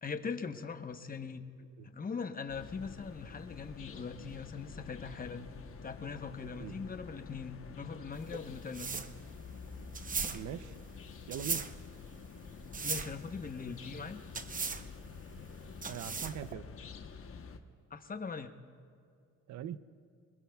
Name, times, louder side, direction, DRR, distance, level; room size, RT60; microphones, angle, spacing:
voice 1, 0.0-1.5 1.8-5.5 5.8-8.9 12.8-14.2 17.9-18.5, left 5 dB, 30° left, 7 dB, 1.0 m, -41 dB
sound 1, 2.5-17.6, left 5 dB, 45° left, 1.1 m, -49 dB
sound 2, 8.1-16.5, right 5 dB, 25° right, 0.7 m, -39 dB
voice 2, 10.3-10.7 11.3-11.6 15.9-16.6 19.5-19.8, right 10 dB, 65° right, 14 dB, 0.7 m, -41 dB
25.0 x 21.0 x 2.4 m, 2.3 s
cardioid pair, 90°, 30 cm